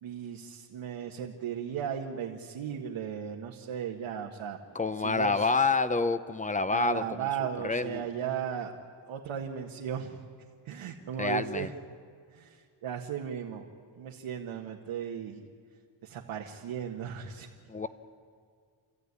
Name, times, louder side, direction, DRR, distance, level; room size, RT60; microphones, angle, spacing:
voice 1, 0.0-4.6 5.0-5.5 6.7-8.7 9.1-10.2 10.7-11.7 12.3-13.6 14.0-15.4 16.0-17.5, right 8 dB, 85° right, 0 dB, 1.8 m, -36 dB
voice 2, 4.7-7.3 7.6-8.0 11.2-11.7 17.7-17.9, left 4 dB, 15° left, 12 dB, 0.8 m, -28 dB
29.0 x 14.0 x 9.7 m, 2.1 s
cardioid pair, 135°, 47 cm